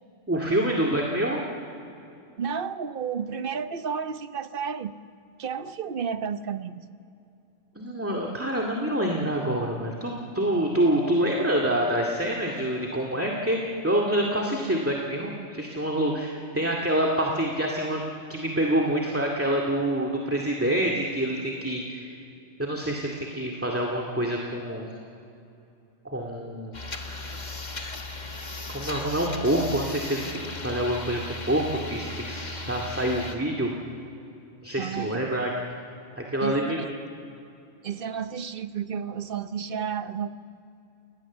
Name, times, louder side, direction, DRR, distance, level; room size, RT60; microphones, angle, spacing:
voice 1, 0.3-1.4 7.8-18.0 18.3-22.1 22.6-24.9 26.0-27.4 28.7-31.2 31.5-33.7 34.6-35.5 36.2-36.8, right 1 dB, 10° right, -1 dB, 2.1 m, -26 dB
voice 2, 2.4-4.9 5.4-6.8 34.8-35.3 36.4-36.9 37.8-40.3, right 7 dB, 50° right, 11 dB, 1.0 m, -32 dB
sound 1, 26.7-33.4, left 2 dB, 40° left, 1.8 m, -36 dB
29.0 x 19.0 x 7.3 m, 2.7 s
omnidirectional pair, 1.2 m